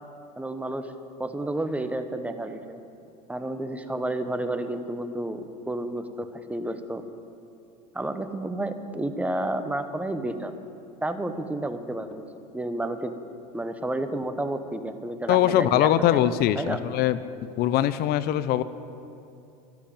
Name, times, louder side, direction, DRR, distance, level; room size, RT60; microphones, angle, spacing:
voice 1, 0.4-0.9 1.2-2.8 3.3-7.0 7.9-10.5 11.0-12.3 12.5-13.2 13.5-16.8, right 1 dB, 5° right, 9 dB, 1.1 m, -31 dB
voice 2, 15.3-17.2 17.6-18.6, left 12 dB, 50° left, 15 dB, 0.7 m, -22 dB
13.0 x 12.0 x 8.8 m, 2.7 s
supercardioid pair, 105°, 21 cm